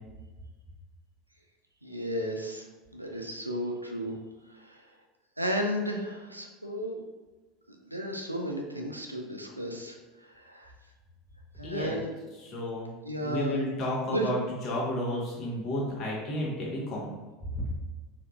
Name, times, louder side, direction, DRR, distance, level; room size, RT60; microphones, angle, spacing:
voice 1, 1.8-2.7 2.9-4.1 4.5-4.8 5.4-7.0 7.8-10.7 11.6-12.1 13.0-13.6 14.1-14.3, equal, 85° right, 2 dB, 0.3 m, -33 dB
voice 2, 11.6-12.0 12.4-12.9 13.2-14.4 14.6-17.1 17.5-17.6, left 1 dB, 40° left, -4 dB, 1.0 m, -32 dB
3.5 x 2.7 x 2.4 m, 1.2 s
figure-of-eight pair, 75°, 0 cm